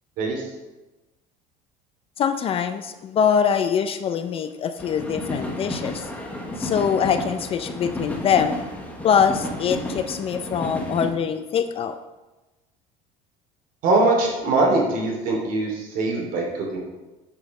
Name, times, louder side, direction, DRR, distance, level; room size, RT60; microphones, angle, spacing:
voice 1, 2.2-6.1 6.6-8.6 9.0-11.9, left 7 dB, 35° left, 10 dB, 0.4 m, -23 dB
sound 1, 4.8-11.1, left 1 dB, 10° left, 1.1 m, -32 dB
voice 2, 13.8-16.8, right 2 dB, 55° right, -1 dB, 2.8 m, -22 dB
7.7 x 6.3 x 5.4 m, 1.1 s
cardioid pair, 145°, 17 cm